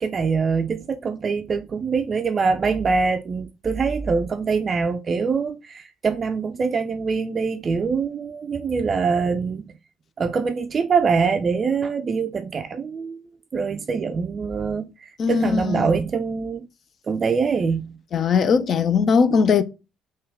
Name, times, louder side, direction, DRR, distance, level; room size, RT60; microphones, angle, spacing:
voice 1, 0.0-9.7 10.2-13.2 13.5-16.7 17.1-18.0, right 5 dB, 35° right, 0.4 m, -24 dB
voice 2, 15.2-15.9 18.1-19.6, left 5 dB, 45° left, 0.4 m, -19 dB
3.6 x 2.2 x 3.5 m
hypercardioid pair, 55°, 0 cm